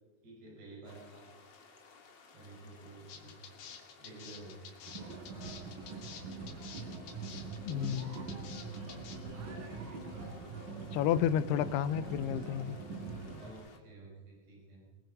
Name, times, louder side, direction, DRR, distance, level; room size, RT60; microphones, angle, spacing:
voice 1, 0.2-1.3 2.3-3.3 4.0-5.0 13.3-14.8, right 2 dB, 80° right, -3 dB, 7.3 m, -52 dB
sound 1, 0.8-13.8, left 4 dB, 35° left, 2.1 m, -59 dB
sound 2, 3.1-9.2, left 7 dB, 65° left, 3.5 m, -50 dB
sound 3, 4.9-13.5, right 4 dB, 60° right, 5.1 m, -43 dB
voice 2, 7.6-8.3 10.9-12.8, left 10 dB, 85° left, 16 dB, 2.8 m, -31 dB
24.0 x 21.0 x 5.4 m, 1.4 s
omnidirectional pair, 4.6 m